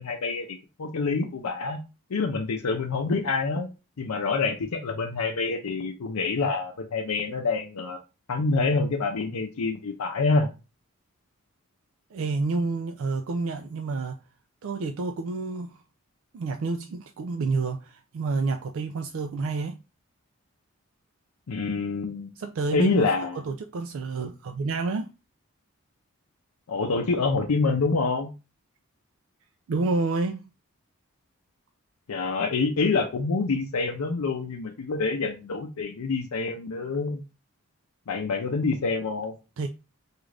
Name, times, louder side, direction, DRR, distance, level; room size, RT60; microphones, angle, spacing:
voice 1, 0.0-1.8 2.1-3.7 4.0-8.0 8.3-10.5 21.5-22.3 22.7-23.4 26.7-28.3 32.1-37.2 38.1-39.3, left 4 dB, 85° left, 0.5 m, -26 dB
voice 2, 12.1-14.2 14.6-15.8 16.3-19.8 22.4-23.1 23.3-25.1 29.7-30.4 39.6-39.7, right 3 dB, 65° right, 0.3 m, -29 dB
3.7 x 2.4 x 3.2 m
head